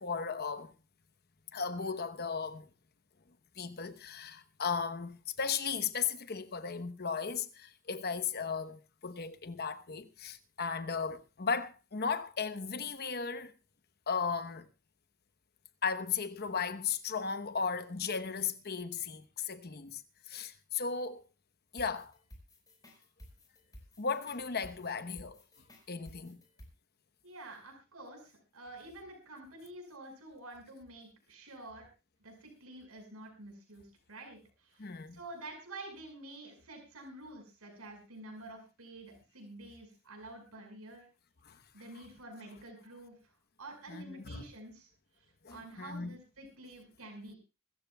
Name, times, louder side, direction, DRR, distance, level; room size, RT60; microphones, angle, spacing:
voice 1, 0.0-0.7 1.5-2.7 3.6-13.5 14.1-14.7 15.8-21.2 21.7-22.1 24.0-25.4 25.9-26.4 34.8-35.2 41.4-41.6 43.9-44.4 45.4-46.1, left 5 dB, 45° left, 1.0 m, -36 dB
sound 1, 21.8-26.7, equal, 20° left, 5.1 m, -54 dB
voice 2, 27.2-31.9 32.2-41.1 41.7-43.3 43.6-44.9 45.2-47.4, right 2 dB, 85° right, 5.5 m, -49 dB
25.5 x 14.0 x 2.3 m
head